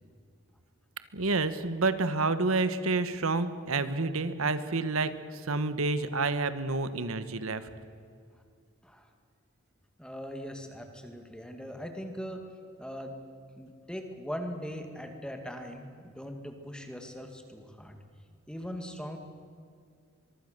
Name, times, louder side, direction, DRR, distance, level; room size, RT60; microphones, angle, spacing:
voice 1, 1.1-7.6, right 3 dB, 85° right, 11 dB, 1.3 m, -29 dB
voice 2, 10.0-12.4 12.8-13.1 13.6-18.0 18.5-19.2, equal, 5° left, 5 dB, 2.0 m, -40 dB
24.5 x 23.0 x 6.7 m, 2.3 s
head